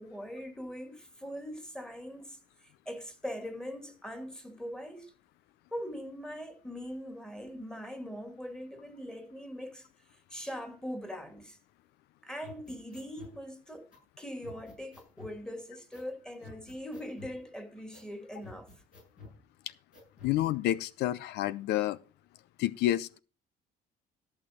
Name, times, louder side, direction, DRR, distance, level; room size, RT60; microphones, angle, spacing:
voice 1, 0.0-5.1 5.7-9.9 10.3-11.6 12.2-13.9 14.2-18.7, equal, 5° left, 2.4 m, -41 dB
sound 1, 12.4-13.4 13.9-14.0 14.4-15.4 15.9-16.1 16.4-17.4 17.9-18.1 18.4-19.4 19.9-20.4, left 3 dB, 50° left, 6.9 m, -50 dB
voice 2, 20.2-22.0 22.6-23.2, left 14 dB, 80° left, 0.5 m, -29 dB
14.0 x 6.5 x 5.1 m
cardioid pair, 110°, 17 cm